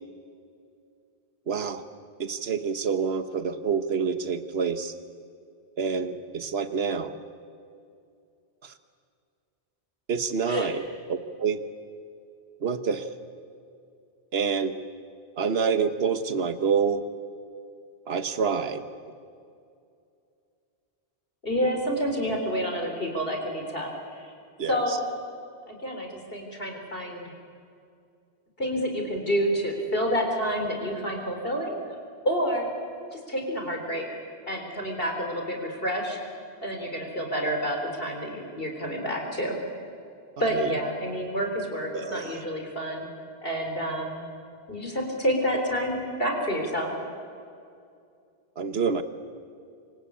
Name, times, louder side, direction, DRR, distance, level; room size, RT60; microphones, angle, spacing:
voice 1, 1.5-1.8 2.2-4.9 5.8-7.1 8.6-8.7 10.1-11.6 12.6-13.1 14.3-14.7 15.4-17.0 18.1-18.8 24.6-25.0 40.5-40.7 41.9-42.4 48.6-49.0, right 6 dB, 70° right, 10 dB, 1.4 m, -27 dB
voice 2, 21.4-24.3 24.7-25.0 25.7-27.2 28.6-31.8 32.2-32.7 33.1-34.1 34.5-36.2 36.6-39.6 40.4-43.1 43.4-44.3 44.7-46.9, equal, 60° left, 2 dB, 4.2 m, -29 dB
28.5 x 24.0 x 8.7 m, 2.4 s
omnidirectional pair, 1.1 m